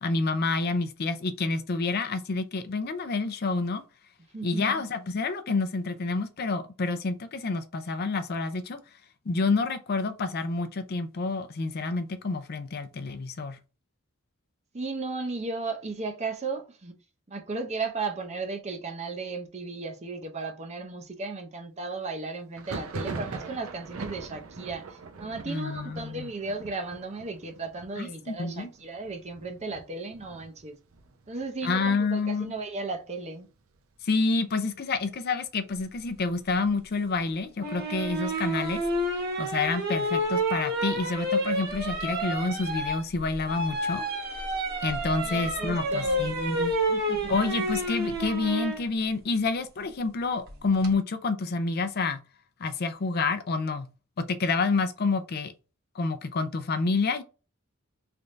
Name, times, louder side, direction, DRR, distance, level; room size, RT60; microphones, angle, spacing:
voice 1, 0.0-3.8 4.4-8.8 9.3-13.6 25.5-26.3 28.0-28.7 31.6-32.5 34.0-38.8 39.4-44.0 44.8-46.8 47.3-52.2 52.6-53.9 54.2-55.5 56.0-57.2, left 3 dB, 50° left, 0.5 m, -28 dB
voice 2, 4.3-4.7 14.7-17.0 17.3-30.8 31.3-33.5 45.2-46.3 46.9-47.3, right 3 dB, 30° right, 0.6 m, -35 dB
Thunder, 22.5-32.0 32.3-33.0 33.2-34.2 34.6-36.3, right 4 dB, 85° right, 0.6 m, -42 dB
sound 1, 37.6-48.8 50.5-50.9, right 1 dB, 50° right, 1.2 m, -29 dB
3.3 x 2.6 x 3.1 m
head